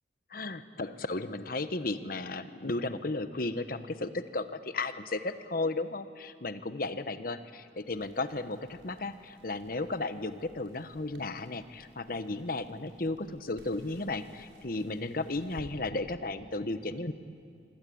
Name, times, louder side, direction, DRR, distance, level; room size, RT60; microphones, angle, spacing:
voice 1, 0.3-17.1, left 2 dB, 50° left, 11 dB, 1.1 m, -34 dB
Crackle, 7.8-15.7, equal, 85° right, 5.5 m, -58 dB
26.0 x 25.0 x 8.7 m, 2.3 s
head